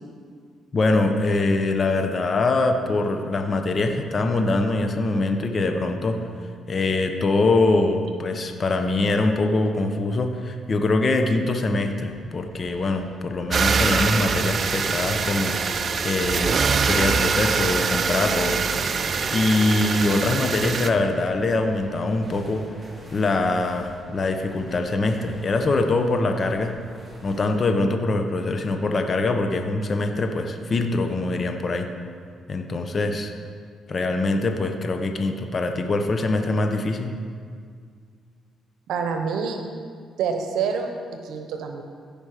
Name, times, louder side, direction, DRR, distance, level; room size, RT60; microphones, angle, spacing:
voice 1, 0.7-6.2 6.7-16.6 16.9-18.7 19.3-22.6 23.1-26.8 27.2-31.9 32.5-33.3 33.9-37.1, left 2 dB, 40° left, 5 dB, 0.9 m, -23 dB
sound 1, 11.8-27.7, right 1 dB, 15° right, 2.0 m, -44 dB
sound 2, 13.5-20.9, right 5 dB, 45° right, 0.5 m, -23 dB
voice 2, 38.9-39.6 40.2-40.9 41.2-41.8, right 6 dB, 80° right, 4 dB, 0.9 m, -26 dB
15.5 x 5.2 x 4.9 m, 2.1 s
cardioid pair, 90°, 0 cm